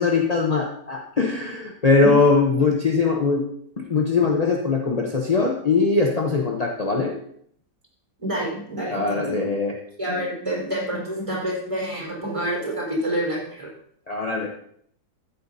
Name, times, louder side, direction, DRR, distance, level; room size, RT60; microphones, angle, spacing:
voice 1, 0.0-3.4 3.9-7.1 8.9-9.8 14.1-14.5, left 4 dB, 35° left, 0 dB, 0.6 m, -21 dB
voice 2, 8.2-9.4 10.0-13.7, right 1 dB, 15° right, -4 dB, 4.4 m, -28 dB
14.0 x 8.6 x 2.7 m, 0.66 s
omnidirectional pair, 2.0 m